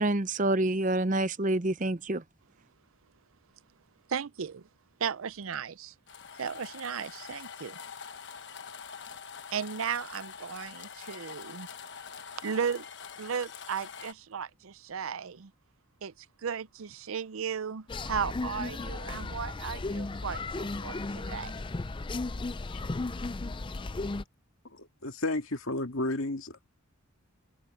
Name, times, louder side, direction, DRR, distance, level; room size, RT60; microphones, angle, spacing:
voice 1, 0.0-2.2, right 2 dB, 35° right, 0.8 m, -27 dB
voice 2, 4.1-4.7 5.0-5.9 6.4-7.8 9.5-11.7 12.4-12.8 13.2-15.5 16.0-21.5, right 7 dB, 75° right, 0.6 m, -35 dB
sound 1, 6.1-14.1, left 6 dB, 55° left, 1.2 m, -45 dB
sound 2, 17.9-24.2, left 3 dB, 25° left, 0.4 m, -35 dB
voice 3, 24.7-26.6, left 2 dB, 70° left, 2.1 m, -32 dB
open air
head